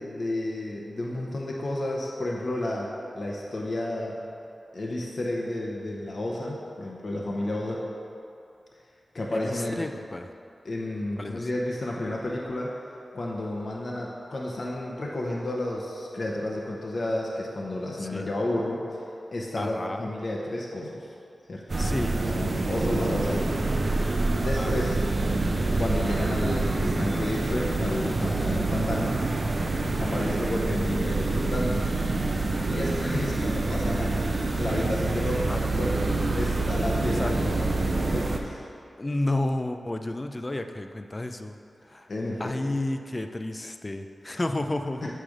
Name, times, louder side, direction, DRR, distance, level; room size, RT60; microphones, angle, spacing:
voice 1, 0.0-4.2 4.7-7.8 9.1-9.9 10.6-12.7 13.1-19.0 19.3-21.1 21.5-21.6 22.2-23.7 24.0-25.0 25.8-29.2 30.0-31.9 32.7-36.0 36.3-38.6 42.1-42.8 45.0-45.1, left 1 dB, 50° left, -3 dB, 0.9 m, -31 dB
voice 2, 9.3-10.3 11.2-11.5 18.0-18.3 19.6-20.1 21.8-22.2 24.6-25.1 29.8-30.2 35.4-35.6 37.1-37.3 39.0-41.6 41.9-42.1 42.4-45.1, left 1 dB, 30° left, 6 dB, 0.4 m, -31 dB
sound 1, 21.7-38.4, right 2 dB, 45° right, 0.6 m, -26 dB
8.4 x 3.4 x 6.4 m, 2.6 s
wide cardioid pair, 75°, 0 cm